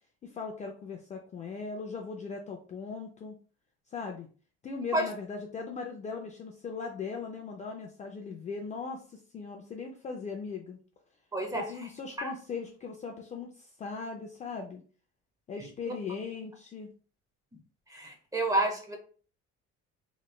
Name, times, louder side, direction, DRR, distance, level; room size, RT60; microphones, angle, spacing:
voice 1, 0.2-3.3 3.9-4.3 4.6-10.8 11.5-14.8 15.5-16.9, left 5 dB, 25° left, 1 dB, 0.4 m, -39 dB
voice 2, 11.3-11.6 12.2-12.3 15.6-15.9 17.9-19.0, right 1 dB, 10° right, 1 dB, 0.7 m, -30 dB
3.2 x 3.0 x 2.3 m, 0.40 s
cardioid pair, 140°, 30 cm